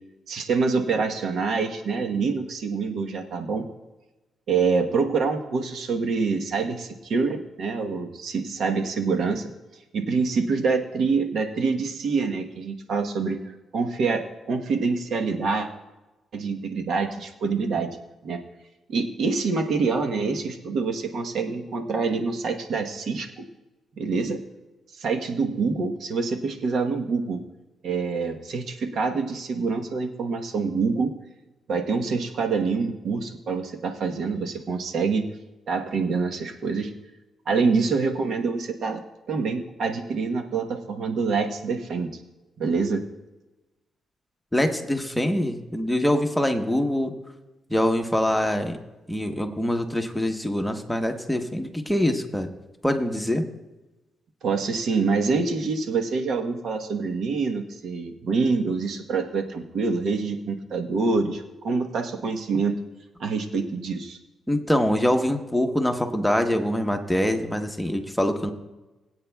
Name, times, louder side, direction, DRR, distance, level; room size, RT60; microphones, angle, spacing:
voice 1, 0.3-3.7 4.5-9.5 9.9-15.7 16.3-17.9 18.2-18.4 18.9-23.5 24.0-24.4 24.9-27.4 27.8-31.1 31.7-35.3 35.7-36.9 37.5-39.0 39.3-42.1 42.6-43.1 54.4-62.8 63.2-64.2, right 4 dB, 70° right, 4 dB, 1.1 m, -26 dB
voice 2, 44.5-47.1 47.7-48.8 49.1-52.5 52.8-53.4 64.5-68.5, left 1 dB, 5° left, 4 dB, 1.1 m, -24 dB
21.5 x 8.6 x 2.3 m, 1.1 s
cardioid pair, 90°, 0 cm